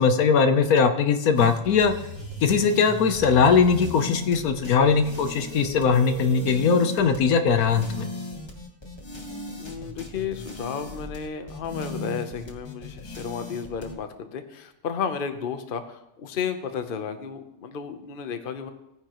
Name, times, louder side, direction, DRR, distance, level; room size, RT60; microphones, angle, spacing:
voice 1, 0.0-1.9 2.4-8.1, left 5 dB, 80° left, 8 dB, 1.3 m, -20 dB
sound 1, 1.4-13.9, left 2 dB, 20° left, 1.4 m, -37 dB
voice 2, 9.6-18.7, left 6 dB, 45° left, 8 dB, 0.9 m, -33 dB
17.5 x 9.6 x 3.0 m, 0.86 s
omnidirectional pair, 1.5 m